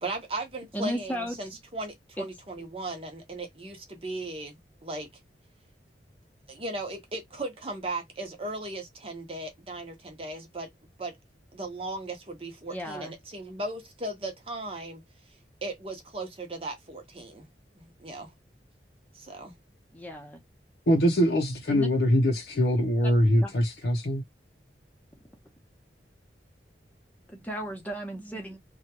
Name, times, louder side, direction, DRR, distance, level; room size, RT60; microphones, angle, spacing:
voice 1, 0.0-5.1 6.5-10.7 11.0-11.1 11.5-15.0 15.6-17.5 17.8-18.3 19.1-19.5, right 2 dB, 30° right, 0.9 m, -37 dB
voice 2, 0.7-1.4 2.2-2.3 12.7-13.1 19.9-20.4 21.7-21.9 23.4-23.5 27.3-28.6, right 1 dB, 10° left, 0.9 m, -34 dB
voice 3, 20.9-24.2, equal, 70° left, 0.6 m, -23 dB
2.8 x 2.3 x 2.9 m
head